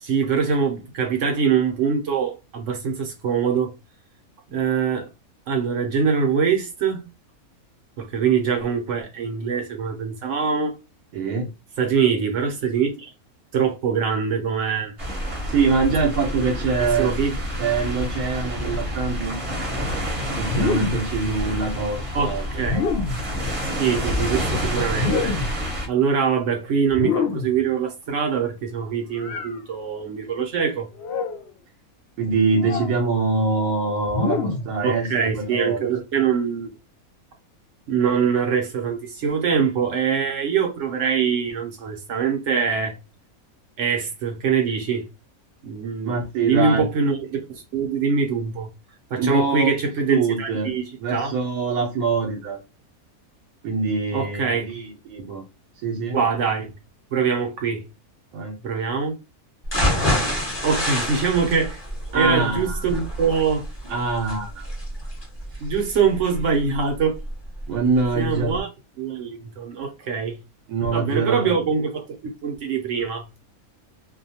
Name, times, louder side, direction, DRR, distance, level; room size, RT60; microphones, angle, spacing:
voice 1, 0.0-3.7 4.5-5.1 5.5-7.1 8.0-10.7 11.8-13.1 13.5-14.9 16.8-17.4 22.1-22.8 23.8-25.3 25.9-30.9 34.8-36.7 37.9-43.0 43.8-45.0 45.6-46.2 46.4-48.7 49.1-51.3 54.1-54.7 56.1-56.7 57.1-57.8 58.6-59.1 60.6-61.8 62.1-63.6 65.6-67.2 68.2-68.7 69.0-70.4 70.9-73.2, right 6 dB, 65° right, 0.8 m, -23 dB
voice 2, 11.1-11.5 15.5-17.1 17.6-19.4 20.3-22.7 32.2-35.9 46.1-46.8 49.2-49.7 50.1-50.7 51.0-52.6 53.6-55.4 55.8-56.2 58.3-58.6 62.1-62.9 63.9-64.6 65.6-65.7 67.7-68.5 70.7-71.5, right 4 dB, 85° right, 1.1 m, -24 dB
sound 1, 15.0-25.9, equal, 30° right, 0.7 m, -28 dB
sound 2, 20.4-21.2 22.6-23.3 24.9-25.6 26.9-27.6 29.2-29.6 31.0-31.5 32.6-33.0 34.1-34.8, left 5 dB, 65° left, 0.6 m, -26 dB
sound 3, 59.6-67.6 68.0-68.1 68.5-68.6, left 1 dB, 20° left, 0.8 m, -27 dB
2.5 x 2.2 x 2.7 m
omnidirectional pair, 1.6 m